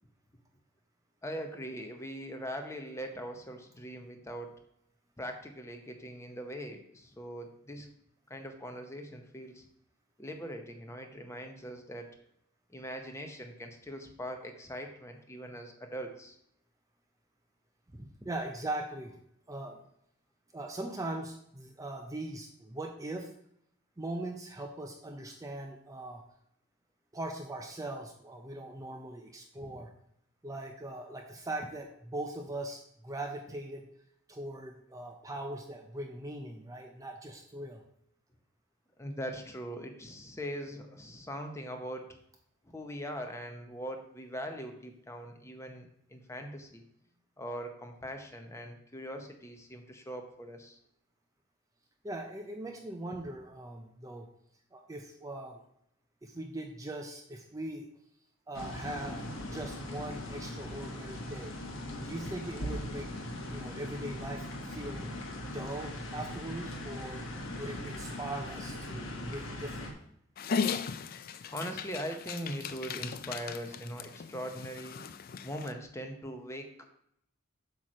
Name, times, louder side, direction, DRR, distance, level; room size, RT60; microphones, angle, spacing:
voice 1, 1.2-4.5 5.2-7.9 8.3-9.6 10.2-12.1 12.7-16.4 39.0-42.0 42.6-46.8 47.4-50.8 71.5-75.0 75.4-76.8, equal, 15° left, 4 dB, 0.8 m, -41 dB
voice 2, 17.9-19.2 19.5-19.8 20.5-23.3 24.0-26.2 27.1-29.9 30.4-33.8 34.3-37.8 52.0-54.3 54.7-55.6 56.2-57.9 58.5-59.2 59.5-61.5 62.0-63.1 63.5-65.2 65.5-67.2 67.6-69.9, right 1 dB, 15° right, 3 dB, 0.5 m, -40 dB
sound 1, 58.5-69.9, left 1 dB, 65° left, 1.3 m, -40 dB
Dog, 70.4-75.7, left 6 dB, 45° left, 0.4 m, -37 dB
8.2 x 3.1 x 6.2 m, 0.72 s
head